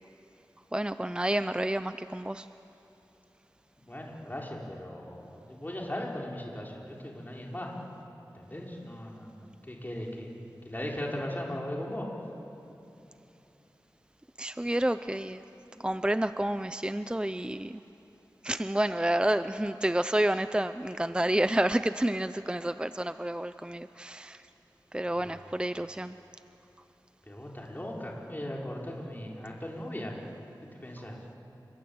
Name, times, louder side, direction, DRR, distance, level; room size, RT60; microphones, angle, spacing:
voice 1, 0.7-2.5 14.4-15.4 15.8-17.8 18.4-24.5 24.9-26.2, right 1 dB, 10° right, 11 dB, 0.6 m, -29 dB
voice 2, 3.8-7.7 8.3-10.3 10.6-12.1 25.2-25.4 27.3-30.1 30.7-31.2, left 1 dB, 25° left, -2 dB, 5.0 m, -38 dB
29.5 x 22.0 x 8.8 m, 2.9 s
wide cardioid pair, 55°, 8 cm